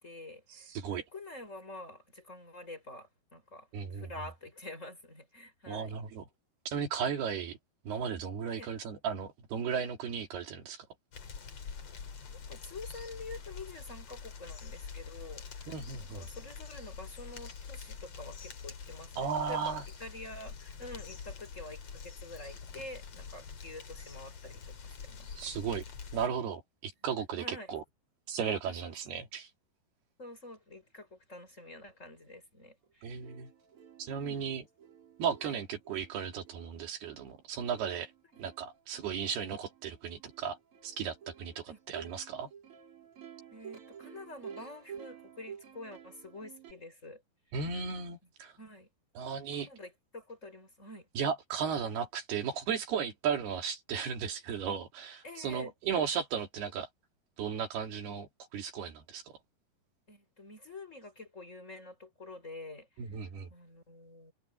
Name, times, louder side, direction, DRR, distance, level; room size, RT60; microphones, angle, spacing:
voice 1, 0.0-0.7 1.1-6.0 8.5-8.7 12.5-15.7 16.1-25.5 27.4-27.8 28.6-29.2 30.2-33.1 34.1-34.4 35.4-35.6 38.3-38.4 41.7-41.8 43.5-47.2 48.6-48.9 49.6-51.1 55.2-55.7 60.1-63.0 63.5-64.3, left 2 dB, 15° left, 5.1 m, -47 dB
voice 2, 0.7-1.0 3.7-4.1 5.7-6.3 6.7-7.6 7.9-10.9 15.7-16.3 19.2-19.8 25.4-25.8 26.1-27.8 28.3-29.5 33.0-33.5 34.0-34.6 35.2-38.1 38.4-40.6 40.8-42.5 47.5-48.5 49.2-49.7 51.2-56.9 57.4-59.2 63.0-63.5, right 7 dB, 75° right, 4.5 m, -35 dB
sound 1, 11.1-26.3, left 6 dB, 45° left, 3.1 m, -45 dB
Plucked string instrument, 32.8-32.9 33.2-46.7, right 8 dB, 35° right, 3.7 m, -52 dB
omnidirectional pair, 4.7 m